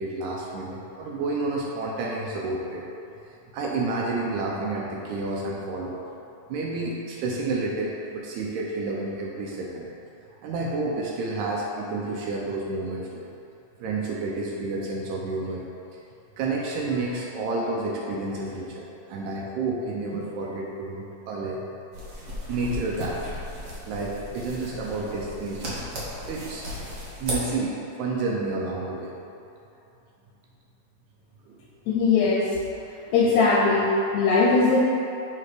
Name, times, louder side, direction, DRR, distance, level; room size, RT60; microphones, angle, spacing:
voice 1, 0.0-2.9 3.5-6.0 6.5-9.9 10.4-13.2 13.8-15.7 15.9-16.0 16.4-21.6 22.5-23.2 23.9-26.7 27.2-29.2 31.5-31.6 32.2-32.3 33.2-33.3 33.7-33.8, right 3 dB, 75° right, -2 dB, 1.8 m, -30 dB
sound 1, 21.9-27.4, equal, 60° right, 1.1 m, -35 dB
voice 2, 31.9-32.5 33.1-34.8, left 4 dB, 80° left, -3 dB, 1.6 m, -20 dB
7.8 x 2.9 x 4.8 m, 2.8 s
omnidirectional pair, 3.7 m